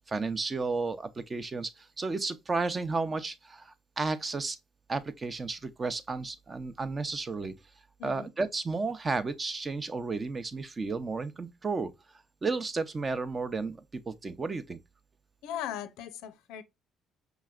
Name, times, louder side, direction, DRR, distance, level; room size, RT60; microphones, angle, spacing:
voice 1, 0.1-4.6 4.9-7.5 8.0-11.9 12.4-14.8, right 3 dB, 30° right, 0.6 m, -33 dB
voice 2, 15.4-16.6, left 10 dB, 85° left, 0.5 m, -38 dB
4.8 x 3.1 x 2.3 m
cardioid pair, 95°, 0 cm